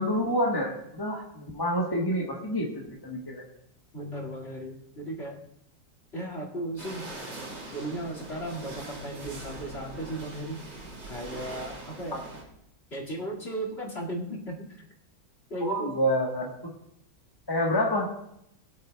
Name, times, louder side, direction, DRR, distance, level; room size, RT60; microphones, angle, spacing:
voice 1, 0.0-3.4 15.6-16.5 17.5-18.1, equal, 15° left, -1 dB, 1.0 m, -28 dB
voice 2, 3.9-5.4 6.1-7.0 7.7-10.6 11.1-12.2 12.9-14.8 15.5-15.9, right 1 dB, 35° left, -1 dB, 2.4 m, -36 dB
sound 1, 6.8-12.4, right 2 dB, 70° right, 3.1 m, -42 dB
23.0 x 8.5 x 2.3 m, 0.77 s
omnidirectional pair, 2.0 m